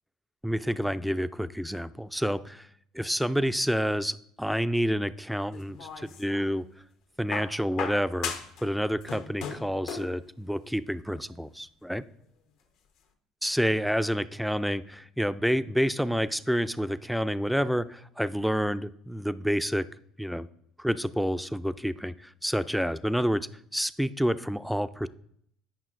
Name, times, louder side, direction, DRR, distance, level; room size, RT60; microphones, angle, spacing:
voice 1, 0.4-2.7 2.9-6.7 7.2-8.3 8.6-12.0 13.4-19.9 20.2-20.5 20.8-25.1, equal, ahead, 14 dB, 0.3 m, -28 dB
sound 1, 5.5-6.5 7.3-8.6 8.9-10.2 11.3-11.4, left 6 dB, 70° left, 0.8 m, -36 dB
9.1 x 5.6 x 2.5 m, 0.68 s
hypercardioid pair, 75°, 0 cm